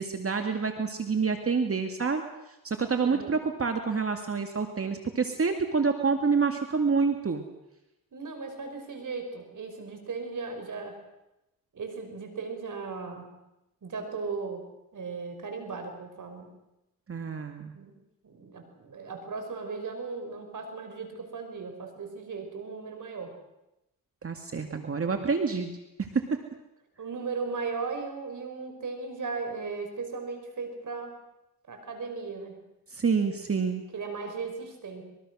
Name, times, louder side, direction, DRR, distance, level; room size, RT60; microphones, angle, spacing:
voice 1, 0.0-2.2 2.6-7.4 17.1-17.7 24.2-25.7 26.0-26.4 32.9-33.8, right 5 dB, 40° right, 5 dB, 2.2 m, -27 dB
voice 2, 8.1-11.0 11.7-13.3 13.8-14.6 14.9-16.5 17.7-18.0 18.2-23.3 27.0-31.2 31.7-32.6 33.9-35.0, right 4 dB, 55° right, 5 dB, 5.7 m, -37 dB
24.5 x 22.5 x 6.4 m, 0.93 s
cardioid pair, 75°, 37 cm